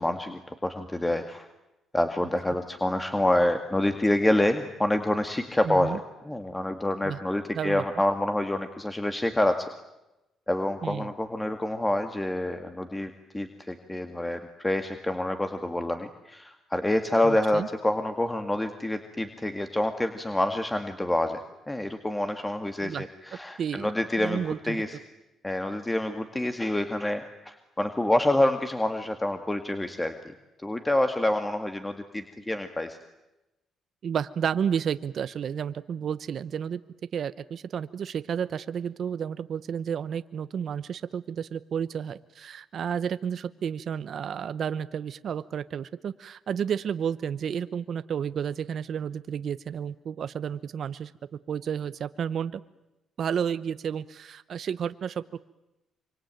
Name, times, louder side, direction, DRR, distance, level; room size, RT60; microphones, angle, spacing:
voice 1, 0.0-1.5 1.9-6.0 6.2-9.7 10.5-21.4 21.7-25.0 25.4-30.1 30.6-33.0, left 1 dB, 15° left, 7 dB, 2.0 m, -27 dB
voice 2, 5.6-6.0 7.0-7.2 7.5-7.8 10.8-11.1 17.2-17.7 22.8-23.0 23.6-23.9 24.2-24.8 34.0-36.8 37.1-51.1 51.5-52.6 53.2-55.4, right 8 dB, 60° right, 14 dB, 0.9 m, -31 dB
26.5 x 24.5 x 9.1 m, 0.96 s
cardioid pair, 90°, 0 cm